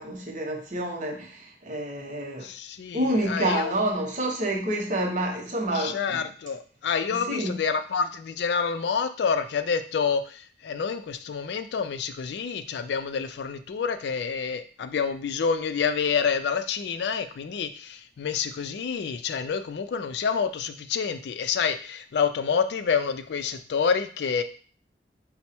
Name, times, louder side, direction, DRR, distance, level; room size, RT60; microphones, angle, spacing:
voice 1, 0.0-2.5 2.9-6.2 7.1-7.5, right 1 dB, 40° right, 1 dB, 0.8 m, -28 dB
voice 2, 2.4-3.7 5.7-24.4, left 6 dB, 65° left, 9 dB, 0.3 m, -28 dB
4.4 x 2.1 x 4.2 m, 0.42 s
head